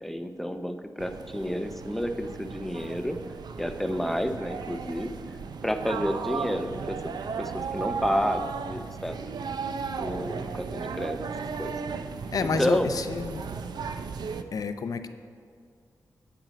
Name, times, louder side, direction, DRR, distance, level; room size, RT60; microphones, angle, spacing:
voice 1, 0.0-3.2 3.6-5.1 5.6-9.2 10.0-11.2 11.6-11.7 12.4-12.9, equal, 5° left, 8 dB, 0.5 m, -30 dB
sound 1, 1.0-14.4, right 5 dB, 80° right, 0.5 m, -35 dB
voice 2, 12.3-13.4 14.5-15.1, left 5 dB, 60° left, 9 dB, 0.6 m, -29 dB
9.0 x 8.8 x 5.1 m, 2.3 s
wide cardioid pair, 155°, 7 cm